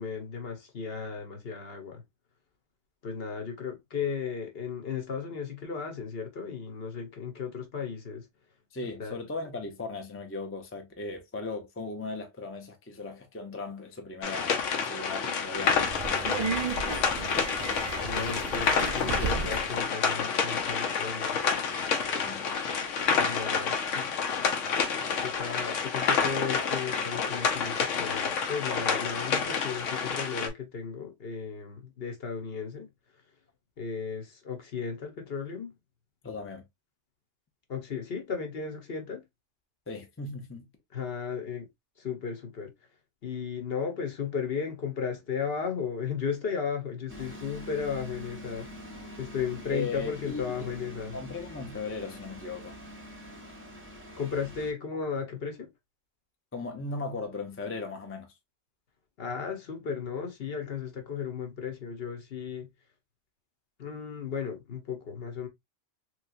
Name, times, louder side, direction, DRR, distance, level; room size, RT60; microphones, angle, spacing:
voice 1, 0.0-2.0 3.0-8.3 9.0-9.2 18.0-21.4 23.1-24.1 25.2-32.9 33.8-35.7 37.7-39.2 40.9-41.7 42.0-42.7 43.2-48.7 49.2-51.2 54.2-55.7 59.2-62.7 63.8-65.5, left 6 dB, 55° left, 1.0 m, -35 dB
voice 2, 8.7-15.8 16.1-16.6 22.2-22.5 36.2-36.6 39.9-40.7 49.7-50.7 51.1-52.7 56.5-58.3, left 3 dB, 20° left, 0.4 m, -37 dB
sound 1, 14.2-30.5, left 5 dB, 85° left, 1.1 m, -29 dB
Subway metro underground, 15.6-19.8, right 5 dB, 60° right, 0.4 m, -34 dB
sound 2, 47.1-54.7, equal, 10° right, 0.8 m, -45 dB
3.3 x 3.1 x 2.4 m
omnidirectional pair, 1.2 m